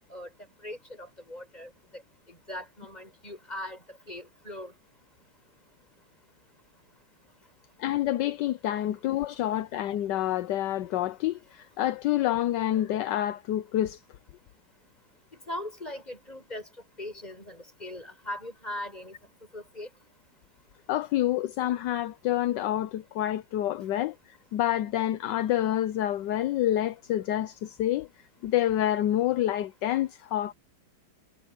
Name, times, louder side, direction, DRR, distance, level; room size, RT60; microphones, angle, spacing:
voice 1, 0.6-2.0 2.3-4.7 15.3-16.7 17.0-19.2 19.5-19.9, left 1 dB, 20° left, 7.7 m, -40 dB
voice 2, 7.8-14.0 20.9-28.1 28.4-30.5, left 13 dB, 70° left, 1.2 m, -28 dB
omnidirectional pair, 2.3 m